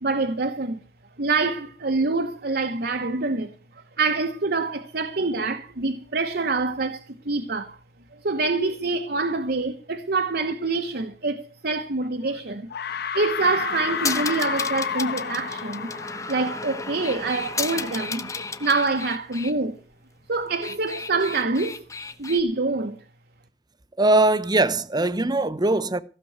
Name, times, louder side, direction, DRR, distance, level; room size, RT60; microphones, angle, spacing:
voice 1, 0.0-0.8 1.2-3.5 4.0-7.8 8.1-12.7 13.1-15.9 16.3-19.8 20.3-21.8 22.2-23.0, right 3 dB, 60° right, 1.1 m, -26 dB
sound 1, 12.0-12.4 12.7-17.3, left 7 dB, 65° left, 1.0 m, -31 dB
sound 2, 13.4-19.5 20.4-22.4, left 4 dB, 20° left, 1.0 m, -33 dB
voice 2, 24.0-26.0, right 2 dB, 25° right, 0.8 m, -21 dB
15.5 x 6.8 x 8.0 m
head